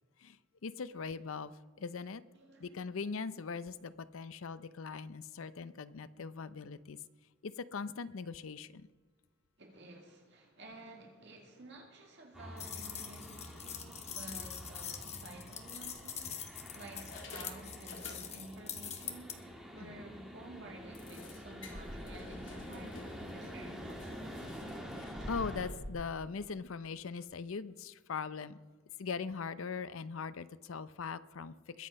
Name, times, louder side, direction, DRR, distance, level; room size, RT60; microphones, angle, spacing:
voice 1, 0.6-1.5 1.8-2.2 2.6-7.0 7.4-8.9 19.8-20.0 24.9-28.6 29.0-31.9, left 5 dB, 75° left, 15 dB, 0.5 m, -41 dB
voice 2, 2.3-2.8 9.6-19.3 19.7-24.4, right 1 dB, 55° right, 1 dB, 2.1 m, -52 dB
sound 1, 12.3-25.7, equal, 5° right, 1.8 m, -47 dB
sound 2, 12.6-19.4, left 8 dB, 30° left, 1.1 m, -44 dB
sound 3, 15.0-15.1 15.8-16.5 17.0-18.6 18.9-19.1 19.5-19.6 19.9-20.0 20.9-25.9, left 1 dB, 60° left, 2.1 m, -49 dB
21.5 x 7.7 x 5.3 m, 1.4 s
head